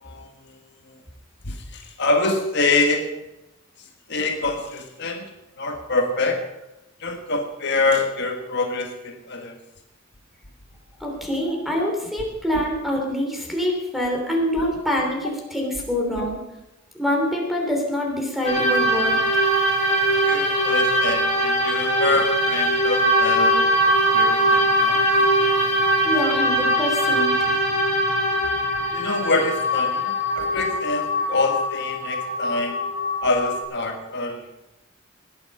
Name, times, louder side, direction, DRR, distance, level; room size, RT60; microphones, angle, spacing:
voice 1, 0.0-0.6 0.8-1.0 1.4-3.1 4.1-5.2 5.6-6.4 7.0-9.6 16.2-16.3 20.3-25.0 28.9-32.8 33.2-34.5, left 3 dB, 55° left, 3 dB, 1.5 m, -25 dB
voice 2, 11.0-16.4 16.9-19.4 26.0-27.6, equal, ahead, 0 dB, 3.1 m, -25 dB
sound 1, 18.4-33.6, equal, 30° left, 4.3 m, -21 dB
19.5 x 9.0 x 5.5 m, 0.97 s
head